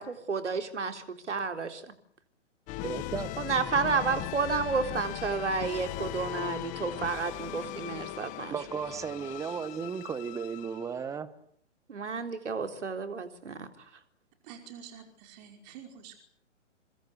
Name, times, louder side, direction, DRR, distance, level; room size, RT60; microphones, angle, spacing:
voice 1, 0.0-1.9 3.4-8.6 11.9-13.7, right 4 dB, 65° right, 3.9 m, -31 dB
sound 1, 2.7-11.1, left 15 dB, 20° left, 1.6 m, -39 dB
voice 2, 2.8-3.3 8.5-11.4, right 6 dB, 10° right, 1.3 m, -35 dB
voice 3, 14.4-16.2, right 8 dB, 35° right, 5.3 m, -48 dB
29.0 x 23.0 x 8.3 m
figure-of-eight pair, 125°, 37 cm